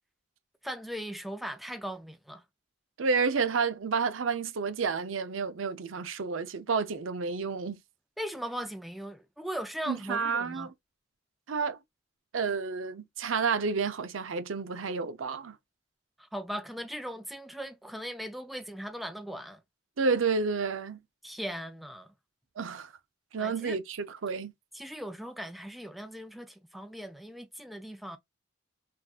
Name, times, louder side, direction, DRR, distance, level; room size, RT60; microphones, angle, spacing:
voice 1, 0.6-2.4 8.2-10.7 16.2-19.6 21.2-22.1 23.4-23.8 24.7-28.2, equal, ahead, 0.3 m, -39 dB
voice 2, 3.0-7.8 9.9-10.7 11.5-11.8 12.3-15.6 20.0-21.0 22.6-22.9 23.3-24.5, right 5 dB, 90° right, 0.6 m, -30 dB
3.4 x 2.6 x 2.3 m
head